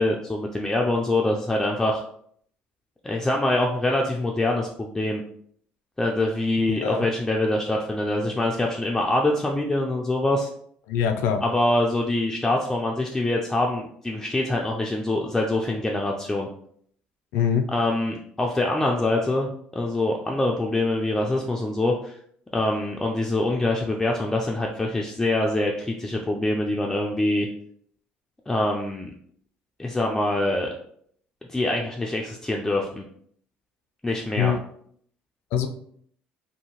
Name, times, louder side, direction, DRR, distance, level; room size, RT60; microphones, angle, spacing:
voice 1, 0.0-2.0 3.0-5.2 6.0-10.5 11.4-16.5 17.7-22.2 22.5-27.5 28.5-29.1 29.8-30.7 31.5-33.0 34.0-34.6, left 2 dB, 10° left, 0 dB, 0.4 m, -24 dB
voice 2, 6.7-7.1 10.9-11.4 17.3-17.7 34.4-34.6 35.5-35.7, left 8 dB, 80° left, 7 dB, 0.4 m, -23 dB
2.7 x 2.6 x 2.9 m, 0.64 s
cardioid pair, 100°, 3 cm